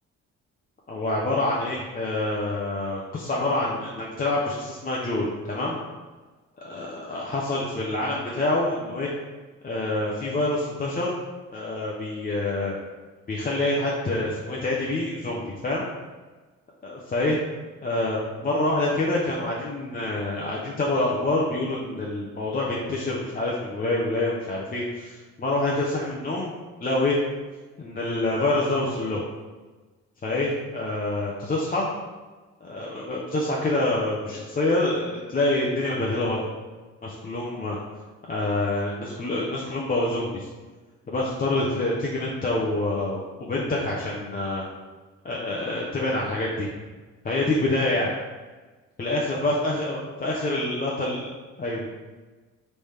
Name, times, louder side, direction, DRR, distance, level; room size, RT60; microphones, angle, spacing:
voice 1, 0.9-5.8 6.6-9.1 9.6-11.1 11.5-12.7 13.3-15.9 16.8-17.4 17.8-26.5 26.8-27.2 27.8-29.2 30.2-31.9 32.6-36.5 37.0-37.8 38.3-40.5 41.1-43.2 43.5-44.6 45.2-46.7 47.2-48.1 49.0-51.3 51.6-51.8, left 2 dB, 30° left, -4 dB, 0.7 m, -26 dB
4.0 x 3.4 x 3.3 m, 1.3 s
cardioid pair, 90°, 30 cm